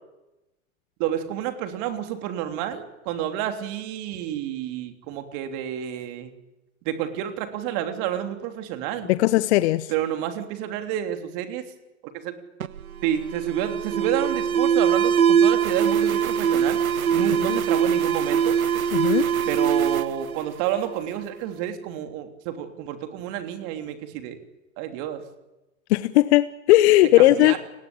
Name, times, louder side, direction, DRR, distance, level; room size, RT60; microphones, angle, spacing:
voice 1, 1.0-6.3 6.8-9.1 9.9-11.6 12.2-12.3 13.0-16.8 17.1-18.6 19.5-24.4 24.8-25.2 27.2-27.6, right 11 dB, 45° right, 7 dB, 3.3 m, -29 dB
voice 2, 9.1-9.9 17.4-17.6 18.9-19.3 25.9-27.5, left 16 dB, 50° left, 15 dB, 1.0 m, -18 dB
Alarm, 12.6-21.2, right 8 dB, 85° right, 0.8 m, -22 dB
30.0 x 19.0 x 8.9 m, 1.0 s
figure-of-eight pair, 100°, 41 cm